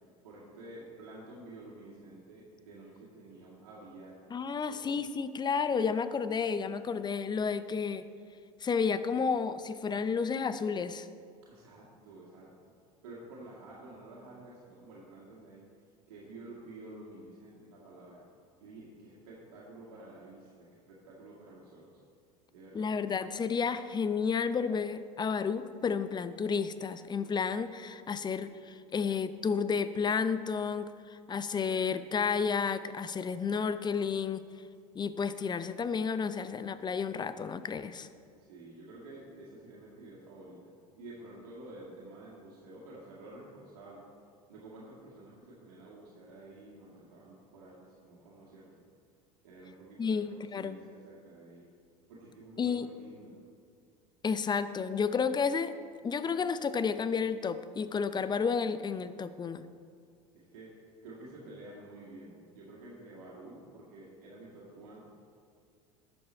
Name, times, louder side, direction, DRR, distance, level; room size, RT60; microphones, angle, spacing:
voice 1, 0.0-4.2 4.7-4.9 11.4-12.7 13.0-15.6 16.1-18.2 18.6-22.0 22.5-23.1 38.4-44.1 44.5-48.7 49.4-51.7 52.1-53.4 60.3-65.1, right 2 dB, 75° right, -6 dB, 2.0 m, -50 dB
voice 2, 4.3-8.0 8.6-11.1 22.7-34.4 34.9-38.1 50.0-50.8 52.6-52.9 54.2-55.7 56.0-59.6, left 5 dB, 20° left, 13 dB, 0.6 m, -31 dB
12.0 x 7.2 x 4.3 m, 2.2 s
hypercardioid pair, 75°, 19 cm